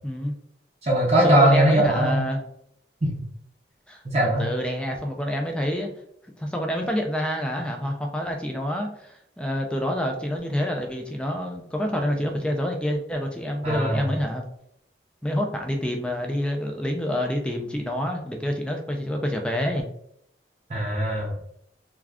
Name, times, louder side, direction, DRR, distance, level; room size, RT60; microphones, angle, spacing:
voice 1, 0.0-0.3 1.2-2.4 3.9-4.0 4.4-5.9 6.4-14.4 15.2-19.9, equal, 5° left, 2 dB, 0.4 m, -27 dB
voice 2, 0.8-2.2 3.0-3.2 4.0-4.4 13.6-14.1 20.7-21.3, right 1 dB, 35° right, -4 dB, 0.6 m, -20 dB
2.3 x 2.3 x 3.4 m, 0.72 s
head